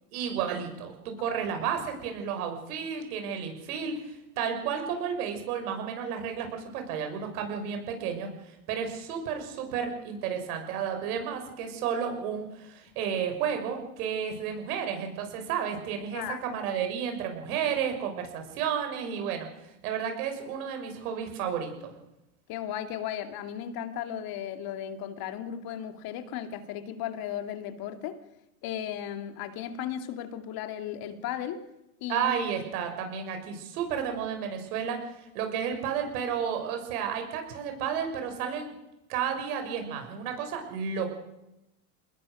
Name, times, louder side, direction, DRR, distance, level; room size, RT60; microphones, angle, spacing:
voice 1, 0.1-21.9 32.1-38.7 39.1-41.1, right 7 dB, 70° right, 5 dB, 6.3 m, -32 dB
voice 2, 22.5-28.2 28.6-31.6 32.0-32.3, left 10 dB, 50° left, 8 dB, 2.6 m, -35 dB
25.0 x 20.5 x 6.5 m, 0.91 s
hypercardioid pair, 110°, 46 cm